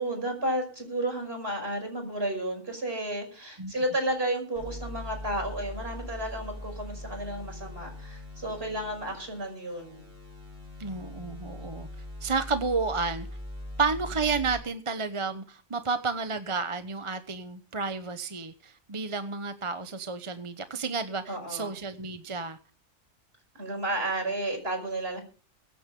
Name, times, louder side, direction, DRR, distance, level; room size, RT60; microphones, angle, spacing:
voice 1, 0.0-10.0 21.3-21.7 23.5-25.2, right 1 dB, 50° right, 5.7 m, -32 dB
sound 1, 4.6-14.6, left 1 dB, 90° right, 6.9 m, -41 dB
voice 2, 10.8-11.9 12.2-13.3 13.8-22.6, right 4 dB, 25° right, 0.9 m, -31 dB
23.5 x 9.3 x 3.7 m
omnidirectional pair, 1.4 m